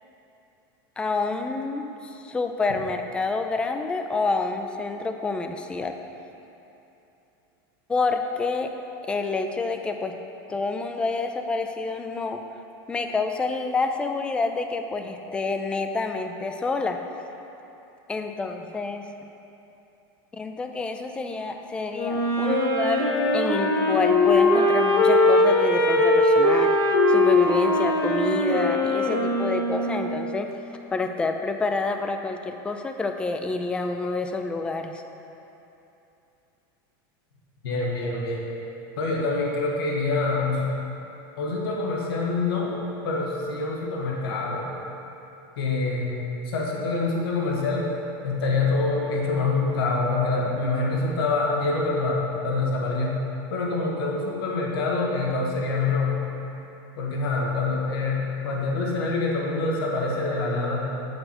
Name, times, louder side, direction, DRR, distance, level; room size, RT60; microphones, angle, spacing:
voice 1, 1.0-5.9 7.9-8.7 9.1-10.1 10.5-12.4 12.9-17.0 18.1-19.1 20.3-23.1 23.3-30.5 30.9-35.0, left 3 dB, 10° left, 5 dB, 0.3 m, -28 dB
Wind instrument woodwind instrument, 21.9-30.3, left 2 dB, 40° left, 1.3 m, -21 dB
voice 2, 37.6-38.5 39.0-40.7 41.4-42.8 43.0-44.7 45.6-47.9 48.2-56.2 57.0-60.9, left 3 dB, 85° left, -2 dB, 1.3 m, -26 dB
7.6 x 6.7 x 4.3 m, 2.9 s
supercardioid pair, 160°, 12 cm